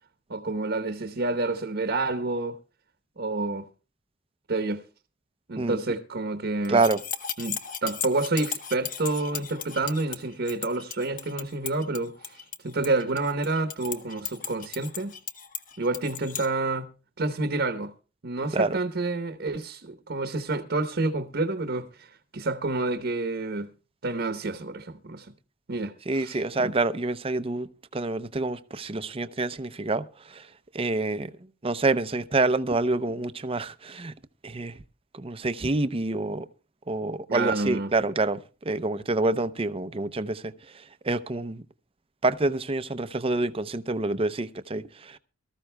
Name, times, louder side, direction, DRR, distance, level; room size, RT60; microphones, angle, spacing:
voice 1, 0.3-2.6 3.2-3.7 4.5-4.8 5.5-6.8 7.4-15.1 15.8-16.9 17.2-17.9 18.2-23.7 24.0-25.3 25.7-26.8 37.3-37.9, right 2 dB, 55° right, 1.0 m, -29 dB
sound 1, 6.6-16.5, left 8 dB, 45° left, 1.0 m, -36 dB
voice 2, 6.7-7.0 18.5-18.7 26.1-27.7 27.9-30.0 30.3-30.4 30.7-31.3 31.6-34.1 34.4-34.7 35.1-36.5 36.9-38.4 38.7-40.5 41.0-41.6 42.2-45.2, right 2 dB, 30° right, 0.6 m, -27 dB
23.5 x 14.0 x 2.2 m
head